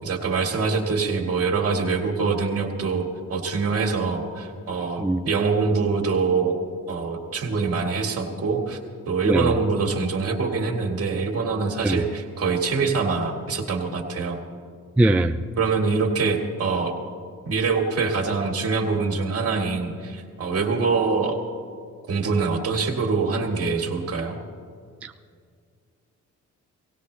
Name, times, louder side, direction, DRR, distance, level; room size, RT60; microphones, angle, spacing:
voice 1, 0.0-6.6 6.9-8.8 9.1-14.4 15.6-17.0 17.4-21.4 22.1-24.4, right 4 dB, 50° right, 3 dB, 2.0 m, -24 dB
voice 2, 15.0-15.4, right 1 dB, 5° right, 6 dB, 0.4 m, -20 dB
18.5 x 17.0 x 3.3 m, 2.1 s
cardioid pair, 90°, 30 cm